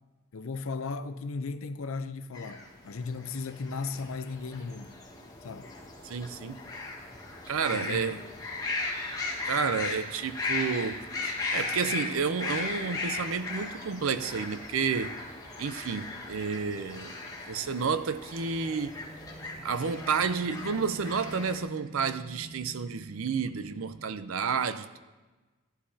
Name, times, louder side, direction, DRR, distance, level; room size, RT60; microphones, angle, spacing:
voice 1, 0.3-5.0 5.4-5.7 7.7-8.2, left 4 dB, 80° left, 0.6 m, -36 dB
sound 1, 2.3-21.6, left 3 dB, 15° left, 1.4 m, -37 dB
voice 2, 6.0-6.6 7.5-8.2 9.4-11.0 11.5-15.2 15.6-17.2 17.5-19.0 19.6-25.0, right 5 dB, 80° right, 0.5 m, -30 dB
sound 2, 17.8-24.1, right 2 dB, 20° right, 0.7 m, -48 dB
14.0 x 11.5 x 2.8 m
head